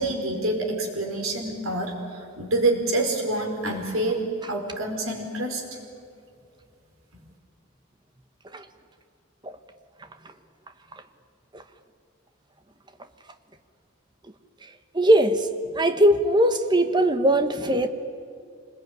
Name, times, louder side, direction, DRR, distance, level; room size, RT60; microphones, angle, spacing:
voice 1, 0.0-5.6, right 2 dB, 90° right, 3 dB, 4.8 m, -27 dB
voice 2, 14.6-15.5 15.7-17.9, right 1 dB, 20° right, 9 dB, 1.2 m, -21 dB
26.0 x 20.5 x 9.6 m, 2.4 s
head